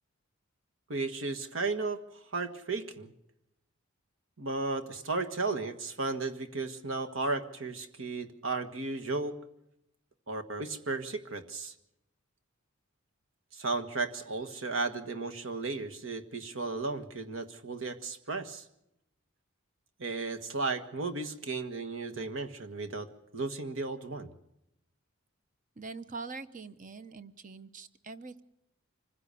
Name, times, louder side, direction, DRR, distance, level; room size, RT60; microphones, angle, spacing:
voice 1, 0.9-3.1 4.4-9.4 10.3-11.7 13.5-18.6 20.0-24.3, right 3 dB, 65° right, 7 dB, 1.6 m, -34 dB
voice 2, 25.8-28.4, right 4 dB, 35° right, 12 dB, 0.9 m, -43 dB
25.0 x 16.0 x 7.0 m, 0.83 s
head